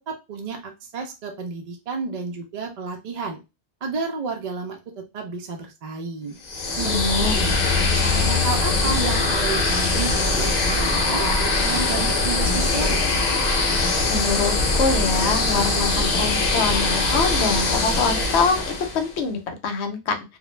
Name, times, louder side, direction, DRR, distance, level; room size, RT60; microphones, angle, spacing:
voice 1, 0.1-3.4 3.8-4.8 5.1-6.4 6.8-7.6 7.9-13.0, right 4 dB, 60° right, 2 dB, 0.4 m, -31 dB
sound 1, 6.4-19.1, left 3 dB, 50° left, 0.6 m, -22 dB
sound 2, 6.6-13.7 13.9-14.4 14.7-14.8, left 10 dB, 20° right, 0.7 m, -31 dB
voice 2, 6.8-7.3 14.1-20.4, left 4 dB, 75° left, 6 dB, 0.9 m, -25 dB
sound 3, 8.8-18.8, right 3 dB, 80° right, 1.0 m, -38 dB
2.3 x 2.0 x 3.0 m, 0.26 s
omnidirectional pair, 1.2 m